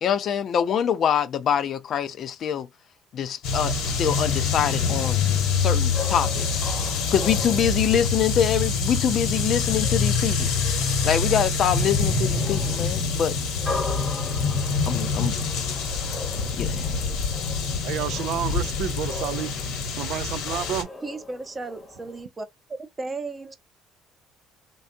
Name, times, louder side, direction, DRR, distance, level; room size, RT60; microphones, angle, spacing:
voice 1, 0.0-2.7 3.1-5.2 5.5-6.6 7.1-10.5 11.0-13.4 14.9-15.4 16.6-16.9, left 8 dB, 55° left, 0.4 m, -25 dB
sound 1, 3.4-20.8, left 4 dB, 75° left, 1.0 m, -25 dB
sound 2, 5.9-22.2, left 3 dB, 20° left, 0.8 m, -39 dB
voice 2, 17.8-20.9, right 11 dB, 75° right, 0.3 m, -30 dB
voice 3, 21.0-22.5 23.0-23.6, right 3 dB, 25° right, 0.7 m, -34 dB
3.4 x 2.3 x 2.6 m
cardioid pair, 105°, 0 cm